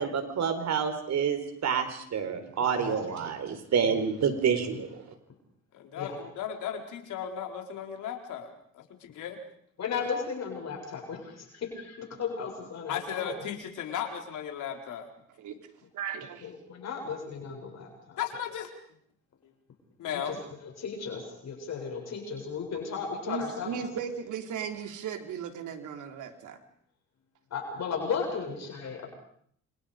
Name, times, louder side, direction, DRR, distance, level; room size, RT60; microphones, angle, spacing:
voice 1, 0.0-5.0, right 7 dB, 65° right, 8 dB, 4.6 m, -28 dB
voice 2, 2.6-3.2 4.2-4.3 4.7-4.8 6.0-6.2 9.8-13.3 16.4-18.2 20.1-20.4 20.6-23.8 27.5-29.1, left 5 dB, 60° left, 2 dB, 7.6 m, -35 dB
voice 3, 5.7-9.4 12.9-15.1 18.2-18.7 19.4-19.5 20.0-20.4, left 8 dB, 80° left, 3 dB, 4.5 m, -36 dB
voice 4, 15.9-16.5 23.3-26.6, right 7 dB, 80° right, 5 dB, 3.7 m, -37 dB
29.5 x 26.5 x 5.2 m, 0.63 s
cardioid pair, 90°, 30 cm